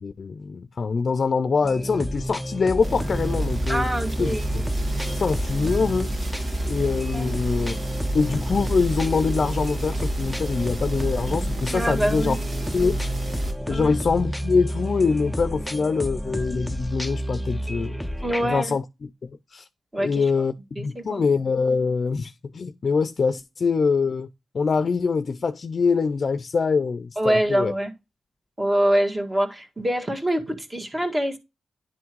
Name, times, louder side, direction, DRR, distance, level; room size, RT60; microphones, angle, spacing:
voice 1, 0.0-3.8 4.2-4.6 5.1-6.1 6.6-7.7 8.1-12.4 12.7-13.1 13.7-17.9 18.4-18.8 19.2-19.6 20.0-24.3 24.5-27.7, left 5 dB, 60° left, 0.5 m, -24 dB
sound 1, 1.6-18.6, equal, 5° left, 0.5 m, -31 dB
sound 2, 2.8-13.5, right 1 dB, 60° right, 2.6 m, -30 dB
voice 2, 3.7-4.4 7.1-7.3 11.7-12.3 13.7-14.0 18.2-18.7 19.9-20.3 20.8-21.2 27.2-27.9 28.6-31.4, right 1 dB, 25° right, 1.8 m, -25 dB
10.5 x 3.5 x 4.6 m
cardioid pair, 75°, 0 cm